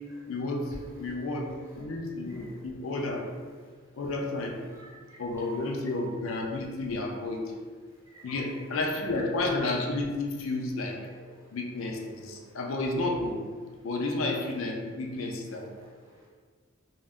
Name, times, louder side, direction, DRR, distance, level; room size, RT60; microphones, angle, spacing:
voice 1, 0.3-3.3 4.0-4.6 5.2-7.4 8.2-11.0 11.5-13.4 13.8-15.7, left 2 dB, 75° left, 1 dB, 0.4 m, -31 dB
voice 2, 4.7-5.2 8.1-8.3 11.4-11.5 12.4-12.5 15.6-16.3, right 1 dB, 15° right, -6 dB, 0.6 m, -53 dB
2.2 x 2.0 x 3.5 m, 1.5 s
head